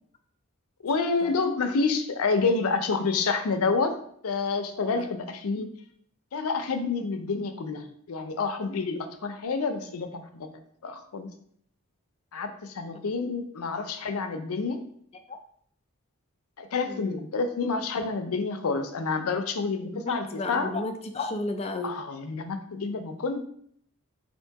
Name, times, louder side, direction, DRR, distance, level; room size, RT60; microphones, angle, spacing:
voice 1, 0.8-3.9 4.2-5.7 6.3-10.5 10.8-11.3 12.3-14.8 16.6-20.7 21.8-23.5, left 4 dB, 85° left, 7 dB, 0.5 m, -28 dB
voice 2, 16.9-17.2 19.8-22.0, left 2 dB, 30° left, 7 dB, 0.3 m, -33 dB
3.6 x 2.6 x 4.6 m, 0.65 s
head